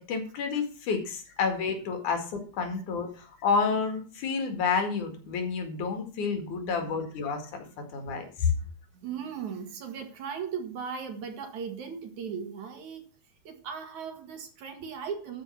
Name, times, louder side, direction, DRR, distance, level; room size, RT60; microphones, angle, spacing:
voice 1, 0.0-7.7 7.9-8.5, left 5 dB, 80° left, 3.5 m, -29 dB
voice 2, 7.7-8.1 8.5-13.1 13.4-15.4, right 6 dB, 70° right, 3.3 m, -38 dB
13.0 x 5.2 x 7.1 m
omnidirectional pair, 3.4 m